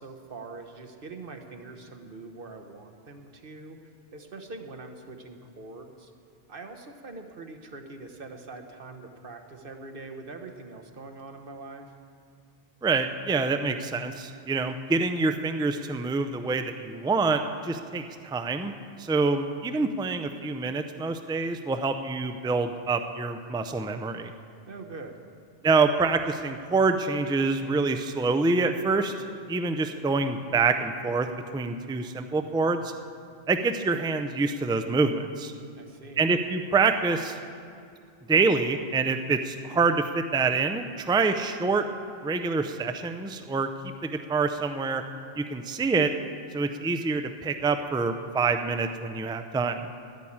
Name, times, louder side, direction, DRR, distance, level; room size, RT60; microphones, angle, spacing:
voice 1, 0.0-3.8 4.1-6.1 6.5-11.9 24.7-25.2 35.7-36.3, right 3 dB, 55° right, 5 dB, 1.2 m, -43 dB
voice 2, 12.8-18.7 19.0-24.3 25.6-29.1 29.5-31.3 31.5-32.9 33.5-35.5 36.2-37.3 38.3-41.8 42.2-43.7 44.0-45.0 45.4-46.1 46.5-49.9, right 4 dB, 5° right, 7 dB, 0.4 m, -26 dB
11.0 x 10.5 x 8.6 m, 2.4 s
omnidirectional pair, 1.1 m